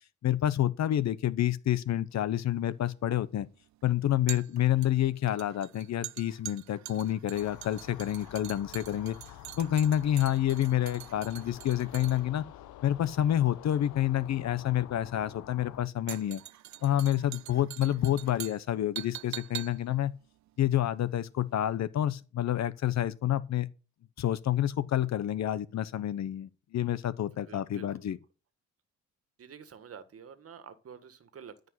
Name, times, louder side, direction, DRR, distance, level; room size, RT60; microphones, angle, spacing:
voice 1, 0.2-3.5 3.8-9.2 9.6-12.4 12.8-16.4 16.8-20.1 20.6-23.7 24.2-28.2, left 12 dB, 60° left, 1.0 m, -28 dB
sound 1, 2.1-21.4 21.7-21.8, right 14 dB, 65° right, 0.6 m, -45 dB
sound 2, 7.3-15.9, left 14 dB, 80° left, 0.8 m, -49 dB
voice 2, 27.4-28.1 29.4-31.7, right 7 dB, 50° right, 1.8 m, -49 dB
13.5 x 5.3 x 8.2 m
cardioid pair, 90°, 30 cm